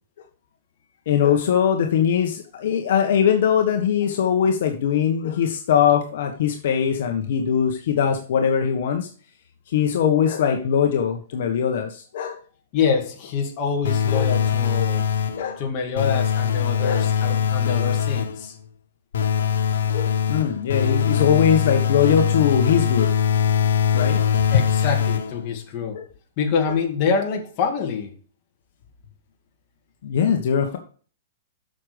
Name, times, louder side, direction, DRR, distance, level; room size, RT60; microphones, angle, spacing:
voice 1, 1.1-9.1 9.7-12.4 14.1-14.3 15.4-15.6 16.8-17.0 19.9-23.1 23.9-24.2 24.5-24.6 25.9-26.0 30.0-30.8, left 8 dB, 55° left, 3 dB, 1.3 m, -21 dB
voice 2, 12.7-15.0 15.6-18.5 24.5-26.0 26.4-28.1, left 6 dB, 30° left, 1 dB, 2.2 m, -25 dB
sound 1, 13.8-15.5 16.0-18.5 19.1-25.5, left 8 dB, 85° left, 1.4 m, -22 dB
8.5 x 6.5 x 5.1 m, 0.41 s
hypercardioid pair, 165°, 0 cm